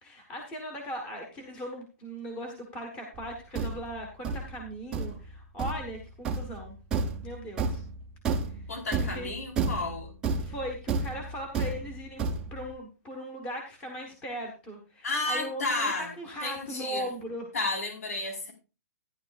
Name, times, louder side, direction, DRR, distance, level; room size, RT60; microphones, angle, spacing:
voice 1, 0.0-6.8 7.2-7.8 8.5-8.6 9.0-9.3 10.4-12.2 12.5-17.5, equal, 10° left, 2 dB, 1.3 m, -38 dB
Thump thud, 3.1-12.7, right 4 dB, 10° right, 0.7 m, -32 dB
voice 2, 8.7-10.1 15.0-16.1 16.4-17.1 17.5-18.5, left 2 dB, 65° left, 3 dB, 4.5 m, -32 dB
14.5 x 10.5 x 2.5 m, 0.31 s
hypercardioid pair, 180°, 9 cm